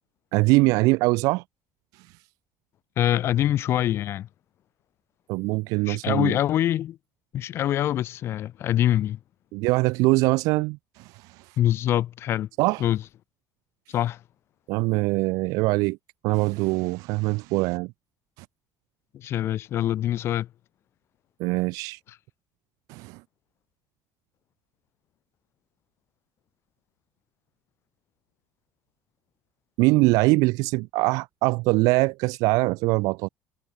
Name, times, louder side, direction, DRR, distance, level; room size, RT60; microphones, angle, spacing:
voice 1, 0.3-1.4 5.3-6.3 9.5-11.4 12.6-12.8 14.7-16.0 16.2-17.9 21.4-22.0 22.9-23.2 29.8-33.3, right 24 dB, 80° right, 1.2 m, -23 dB
voice 2, 3.0-4.3 5.8-7.0 7.3-9.2 11.6-12.5 12.8-13.0 13.9-14.2 19.1-20.5, left 12 dB, 45° left, 3.3 m, -24 dB
cardioid pair, 165°, 6 cm